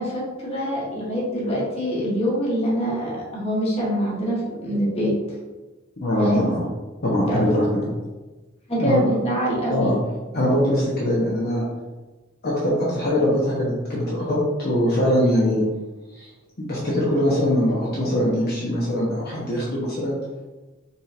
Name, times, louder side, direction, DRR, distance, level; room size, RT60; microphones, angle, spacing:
voice 1, 0.0-5.1 6.2-6.5 7.2-7.4 8.7-10.0, equal, 30° left, -5 dB, 1.3 m, -24 dB
voice 2, 6.0-6.6 7.0-7.9 8.8-9.0 9.7-10.0 10.3-11.6 12.4-15.6 16.1-16.3 16.6-20.2, left 1 dB, 50° left, -6 dB, 0.9 m, -22 dB
5.2 x 3.3 x 2.5 m, 1.2 s
head